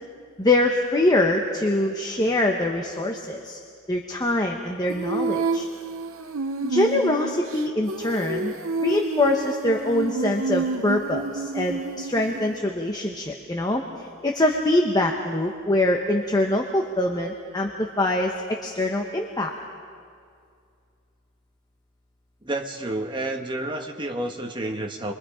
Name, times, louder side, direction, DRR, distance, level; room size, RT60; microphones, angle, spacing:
voice 1, 0.4-3.6 3.9-5.7 6.6-8.6 8.8-18.3 18.6-19.5, left 1 dB, 20° left, 1 dB, 1.1 m, -24 dB
Female singing, 4.9-12.6, right 4 dB, 75° right, 0.8 m, -29 dB
voice 2, 22.4-25.1, right 1 dB, 25° right, 3 dB, 1.5 m, -30 dB
28.0 x 23.5 x 5.0 m, 2.3 s
head